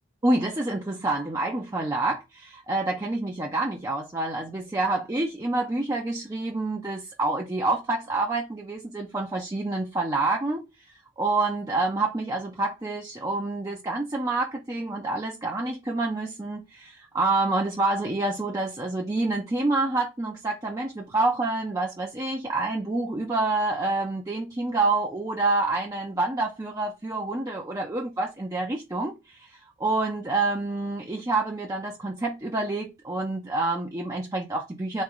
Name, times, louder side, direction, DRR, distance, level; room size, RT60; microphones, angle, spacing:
voice 1, 0.2-10.6 11.2-29.5 29.8-35.0, right 2 dB, 15° right, 0.5 m, -27 dB
4.0 x 3.2 x 3.6 m
head